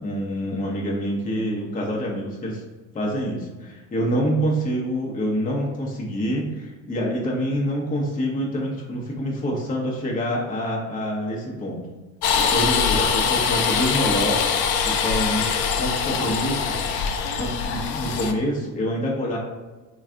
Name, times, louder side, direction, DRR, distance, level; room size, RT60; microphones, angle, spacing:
voice 1, 0.0-2.6 2.9-11.8 12.4-14.4 14.8-15.5 15.7-16.8 17.4-19.4, equal, 20° left, -2 dB, 0.7 m, -26 dB
sound 1, 12.2-18.3, left 6 dB, 70° left, 0.6 m, -23 dB
3.2 x 2.4 x 3.6 m, 1.2 s
supercardioid pair, 85°, 45 cm